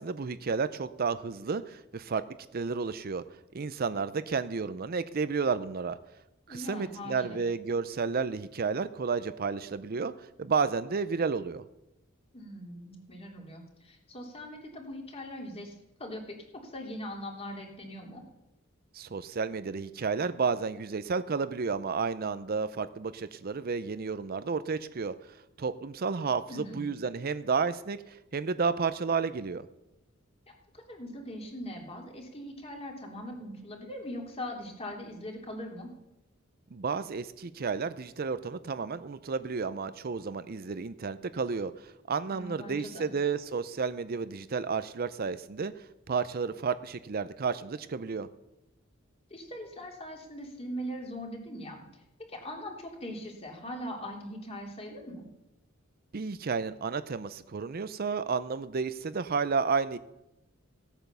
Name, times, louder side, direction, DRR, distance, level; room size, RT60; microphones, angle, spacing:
voice 1, 0.0-2.2 2.5-3.2 3.5-6.0 6.5-11.6 18.9-25.2 25.6-29.7 36.7-48.3 56.1-60.0, right 5 dB, 45° right, 13 dB, 0.5 m, -31 dB
voice 2, 6.5-7.4 12.3-18.2 26.5-26.9 30.7-35.9 42.3-43.1 49.3-52.0 52.3-55.2, equal, 30° left, 1 dB, 3.0 m, -41 dB
16.5 x 9.0 x 6.8 m, 0.91 s
head